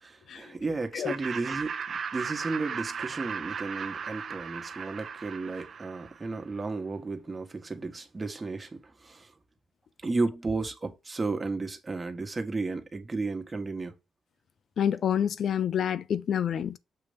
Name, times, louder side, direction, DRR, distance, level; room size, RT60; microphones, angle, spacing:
voice 1, 0.0-9.3 10.0-13.9, right 3 dB, 30° right, 1.5 m, -33 dB
Laughter, 1.1-6.3, right 6 dB, 60° right, 0.7 m, -36 dB
voice 2, 14.8-16.8, left 9 dB, 65° left, 0.6 m, -27 dB
6.9 x 3.0 x 5.1 m
cardioid pair, 65°, 0 cm